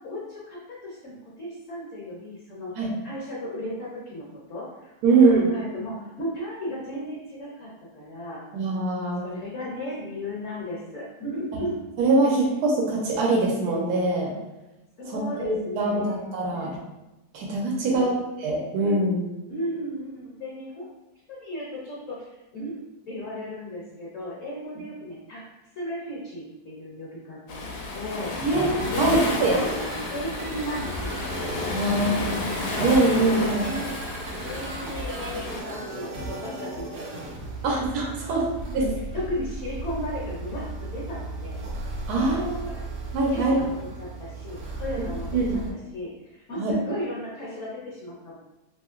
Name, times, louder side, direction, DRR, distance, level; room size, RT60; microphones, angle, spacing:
voice 1, 0.0-2.7 3.0-4.9 5.2-8.4 9.2-11.8 15.0-16.2 16.5-16.7 17.8-18.3 19.5-20.9 21.3-22.8 23.1-25.4 25.7-28.3 28.9-31.2 31.8-32.5 33.5-37.1 37.6-37.8 38.3-38.4 38.8-41.6 42.1-42.8 43.3-48.4, equal, 60° left, -5 dB, 1.0 m, -35 dB
voice 2, 5.0-5.5 8.5-9.2 12.0-12.4 12.6-14.3 15.1-16.7 17.3-19.3 28.4-29.6 31.7-32.5 32.8-33.7 37.6-38.4 38.7-38.8 42.1-42.6 43.1-43.6 45.3-45.6 46.6-46.7, right 2 dB, 85° right, -1 dB, 1.1 m, -23 dB
Waves surf, 27.5-35.6, left 2 dB, 80° left, 1.1 m, -32 dB
sound 1, 28.8-45.7, right 2 dB, 65° right, 0.8 m, -35 dB
2.9 x 2.8 x 2.4 m, 1.0 s
omnidirectional pair, 1.6 m